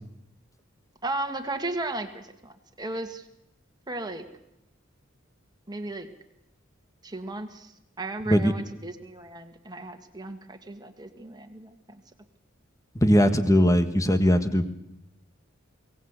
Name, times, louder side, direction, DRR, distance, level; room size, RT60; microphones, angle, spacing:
voice 1, 1.0-3.2 3.9-4.2 5.7-6.1 7.0-7.7 8.0-11.7, right 2 dB, 20° right, 5 dB, 2.1 m, -35 dB
voice 2, 12.9-14.7, equal, 15° left, 10 dB, 1.5 m, -20 dB
23.5 x 18.0 x 8.3 m, 0.83 s
head